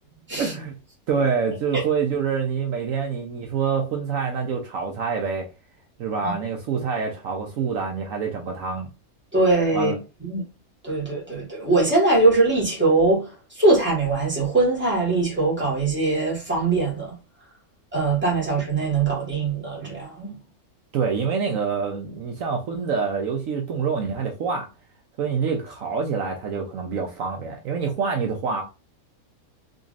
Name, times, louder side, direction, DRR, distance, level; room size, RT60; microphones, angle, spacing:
voice 1, 0.4-0.8 1.1-5.5 6.0-8.9 9.7-10.0 20.9-24.7 25.2-28.6, right 6 dB, 70° right, 1.0 m, -26 dB
voice 2, 9.3-9.9 10.2-10.4 10.8-17.1 17.9-20.3, right 3 dB, 10° right, 1.5 m, -21 dB
3.8 x 3.0 x 2.5 m
omnidirectional pair, 1.5 m